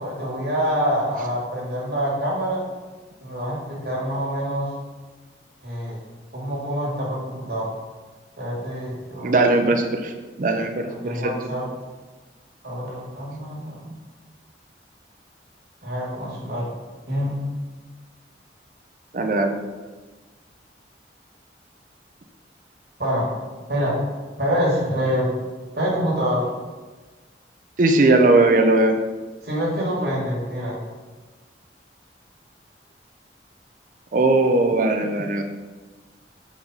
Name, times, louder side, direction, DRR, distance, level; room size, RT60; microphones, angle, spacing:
voice 1, 0.0-2.6 3.2-4.7 5.6-6.0 6.3-7.7 8.4-9.6 11.0-11.7 12.6-13.9 15.8-16.7 17.1-17.4 23.0-23.3 23.7-24.0 24.4-25.3 25.8-26.5 29.4-30.8, equal, 60° right, -5 dB, 2.0 m, -26 dB
voice 2, 9.2-10.1 10.4-11.3 19.1-19.6 27.8-28.9 34.1-35.4, right 2 dB, 45° right, 5 dB, 0.5 m, -19 dB
4.9 x 4.0 x 5.1 m, 1.3 s
head